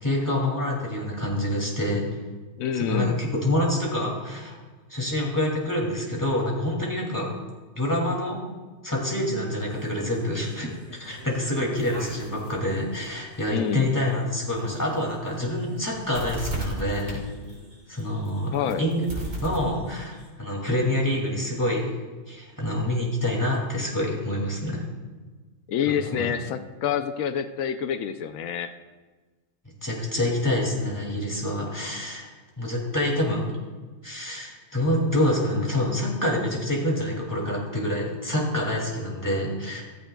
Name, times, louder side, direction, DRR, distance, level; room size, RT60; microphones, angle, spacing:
voice 1, 0.0-2.1 2.8-4.6 4.9-7.3 7.7-8.4 8.8-10.7 11.0-17.2 17.9-19.1 19.3-21.9 22.3-24.8 25.9-26.3 29.8-32.3 32.6-33.5 34.0-39.8, left 1 dB, 15° left, -2 dB, 2.3 m, -27 dB
voice 2, 2.6-3.2 13.5-13.9 18.5-18.8 25.7-28.7, left 8 dB, 90° left, 10 dB, 1.0 m, -27 dB
sound 1, 9.6-20.3, right 1 dB, 75° right, 3.6 m, -39 dB
15.0 x 13.5 x 2.3 m, 1.3 s
omnidirectional pair, 1.4 m